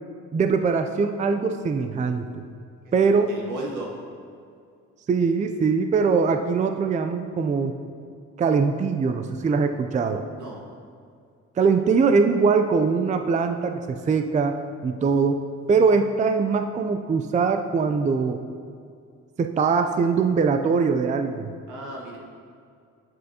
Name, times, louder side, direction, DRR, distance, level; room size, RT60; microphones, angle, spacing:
voice 1, 0.3-2.4 2.9-3.3 5.1-7.7 8.4-10.2 11.6-14.6 14.8-15.4 15.7-18.4 19.4-21.5, right 5 dB, 25° right, 7 dB, 0.4 m, -22 dB
voice 2, 2.8-4.0 10.3-10.6 21.7-22.2, right 2 dB, 85° right, -2 dB, 1.7 m, -36 dB
9.9 x 6.5 x 2.8 m, 2.3 s
cardioid pair, 90°, 30 cm